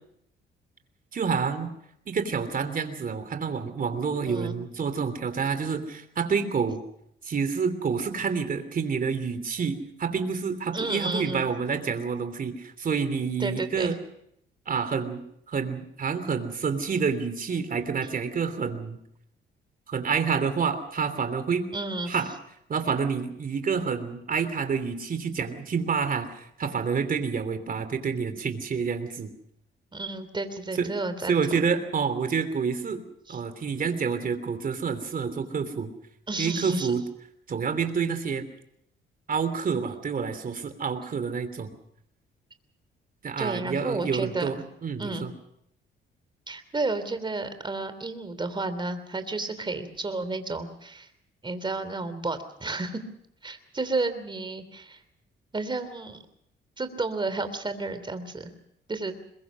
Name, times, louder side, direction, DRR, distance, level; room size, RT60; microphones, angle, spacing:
voice 1, 1.1-1.7 2.1-6.8 7.2-14.0 14.7-15.2 15.5-19.0 19.9-21.7 22.1-22.3 22.7-29.3 30.8-30.9 31.3-33.0 33.3-35.9 36.4-37.0 37.5-38.5 39.3-41.7 43.2-45.3, right 5 dB, 45° right, 10 dB, 3.0 m, -28 dB
voice 2, 10.7-11.4 13.4-13.9 21.7-22.1 29.9-31.4 33.3-33.4 36.3-36.9 43.4-44.5 45.0-45.3 46.5-51.1 51.4-53.0 53.4-55.0 55.5-56.2 56.8-58.5 58.9-59.2, right 3 dB, 25° right, 10 dB, 3.2 m, -31 dB
22.0 x 22.0 x 6.3 m, 0.73 s
cardioid pair, 90°, 20 cm